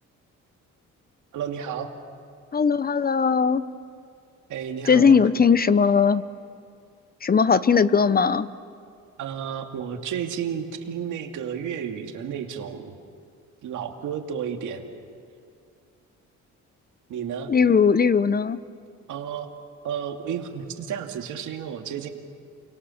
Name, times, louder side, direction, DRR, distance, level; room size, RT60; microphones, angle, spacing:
voice 1, 1.3-1.9 4.5-5.2 9.2-13.0 13.6-14.8 17.1-17.5 19.1-19.5 19.8-22.1, right 8 dB, 80° right, 4 dB, 2.4 m, -32 dB
voice 2, 2.5-3.7 4.9-6.2 7.2-8.5 17.5-18.6, left 6 dB, 30° left, 15 dB, 0.8 m, -19 dB
28.5 x 24.5 x 7.2 m, 2.3 s
cardioid pair, 90°, 30 cm